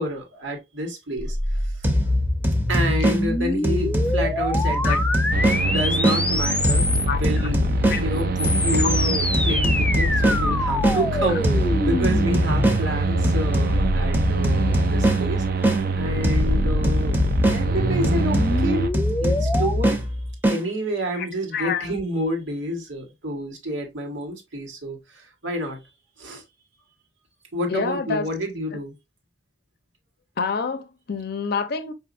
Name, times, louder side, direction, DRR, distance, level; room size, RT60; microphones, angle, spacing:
voice 1, 0.0-1.9 2.7-5.0 5.5-7.6 7.9-18.9 19.2-20.0 20.4-25.8 26.2-26.4 27.5-28.9, equal, 90° right, 1.4 m, -29 dB
sound 1, 1.2-7.3 8.1-14.8 15.8-19.7, left 1 dB, 5° left, 0.3 m, -26 dB
sound 2, 1.8-6.2 6.6-11.0 11.4-15.8 16.2-20.6, equal, 10° right, 0.7 m, -23 dB
sound 3, 5.3-18.9, right 3 dB, 55° right, 0.5 m, -26 dB
voice 2, 21.5-21.8 27.7-28.3 30.4-31.9, left 5 dB, 55° left, 0.6 m, -27 dB
5.0 x 2.7 x 2.5 m
head